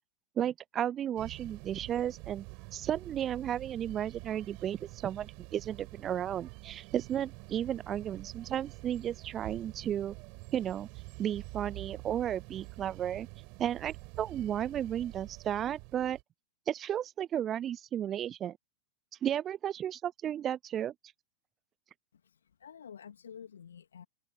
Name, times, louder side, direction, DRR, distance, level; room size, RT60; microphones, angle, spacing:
voice 1, 0.4-2.5 2.7-10.2 10.5-10.9 11.2-13.3 13.6-16.2 16.7-18.6 19.2-20.9, right 10 dB, 30° right, 0.3 m, -33 dB
sound 1, 1.2-16.2, right 33 dB, 45° right, 7.2 m, -47 dB
voice 2, 22.1-24.0, left 8 dB, 70° left, 3.0 m, -50 dB
open air
figure-of-eight pair, 90°, 0 cm